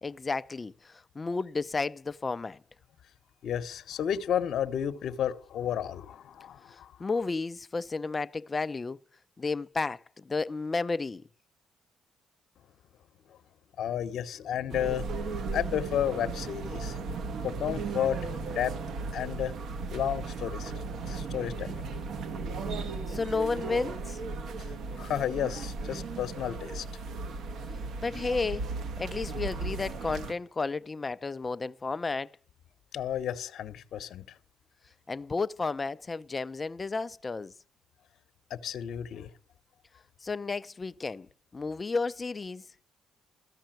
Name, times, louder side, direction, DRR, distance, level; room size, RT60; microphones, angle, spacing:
voice 1, 0.0-2.6 6.7-9.0 9.4-11.2 23.1-24.2 28.0-28.6 29.0-32.3 35.1-37.5 40.2-41.3 41.5-42.6, left 4 dB, 30° left, 0.5 m, -32 dB
voice 2, 3.4-6.9 13.3-13.4 13.8-17.0 17.4-18.7 19.1-19.6 19.9-20.7 21.1-21.8 24.6-24.7 25.0-26.8 32.9-34.3 38.5-39.3, left 10 dB, 70° left, 1.0 m, -32 dB
sound 1, 14.7-30.3, right 3 dB, 70° right, 1.4 m, -36 dB
14.0 x 5.6 x 9.0 m
cardioid pair, 90°, 0 cm